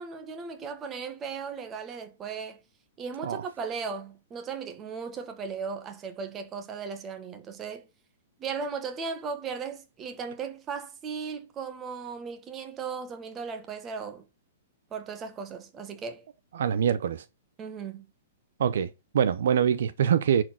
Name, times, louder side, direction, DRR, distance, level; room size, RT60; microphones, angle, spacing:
voice 1, 0.0-2.6 3.0-7.9 8.4-14.2 14.9-16.2 17.6-18.1, right 5 dB, 20° right, 1.6 m, -36 dB
voice 2, 16.5-17.2 18.6-20.4, right 8 dB, 70° right, 0.9 m, -24 dB
10.5 x 4.8 x 6.0 m
hypercardioid pair, 160°, 0 cm